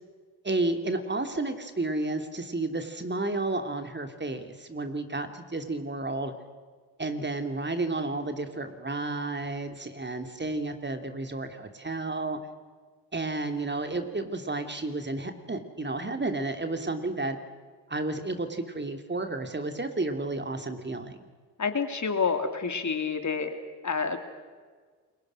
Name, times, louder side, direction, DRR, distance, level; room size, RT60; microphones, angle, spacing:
voice 1, 0.4-6.3 7.0-12.4 13.1-17.4 17.9-21.2, right 2 dB, 25° right, 7 dB, 3.0 m, -31 dB
voice 2, 21.6-23.5 23.8-24.2, left 5 dB, 40° left, 7 dB, 2.7 m, -28 dB
29.5 x 22.0 x 6.4 m, 1.5 s
hypercardioid pair, 45°, 44 cm